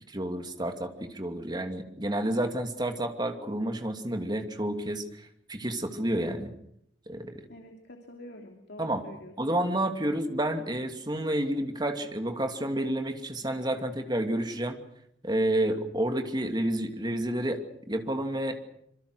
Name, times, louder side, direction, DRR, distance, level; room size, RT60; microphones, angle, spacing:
voice 1, 0.1-5.0 5.5-6.5 7.1-7.4 8.8-9.0 9.4-14.8 15.2-18.6, right 1 dB, 20° right, 6 dB, 2.6 m, -30 dB
voice 2, 7.5-9.5, left 1 dB, 60° left, 3 dB, 2.9 m, -47 dB
26.5 x 23.5 x 6.4 m, 0.73 s
head